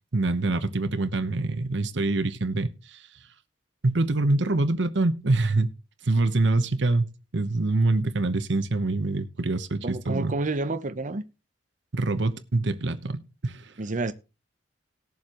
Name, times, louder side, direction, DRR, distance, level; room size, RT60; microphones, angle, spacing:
voice 1, 0.1-3.0 3.8-5.7 6.0-10.3 11.9-13.7, right 2 dB, 70° right, 1.0 m, -25 dB
voice 2, 9.8-11.2 13.8-14.1, right 2 dB, 45° right, 0.8 m, -29 dB
19.0 x 7.2 x 3.0 m
head